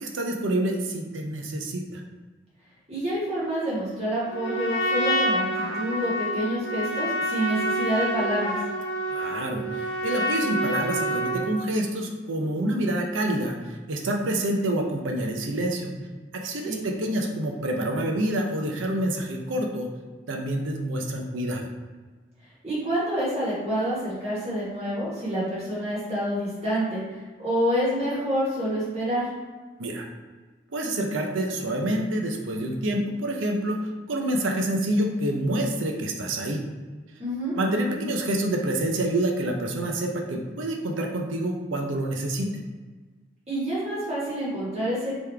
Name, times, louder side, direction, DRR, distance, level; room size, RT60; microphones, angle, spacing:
voice 1, 0.0-2.0 9.1-15.9 16.3-19.9 20.3-21.7 29.8-30.1 30.7-36.6 37.6-42.5, right 1 dB, 80° right, 2 dB, 0.6 m, -27 dB
voice 2, 2.9-8.6 16.6-16.8 22.6-27.0 27.4-29.2 37.2-37.6 43.5-45.2, equal, 35° right, -8 dB, 1.5 m, -27 dB
Trumpet, 4.3-11.6, equal, 80° left, 0.8 m, -27 dB
3.7 x 3.1 x 3.3 m, 1.4 s
head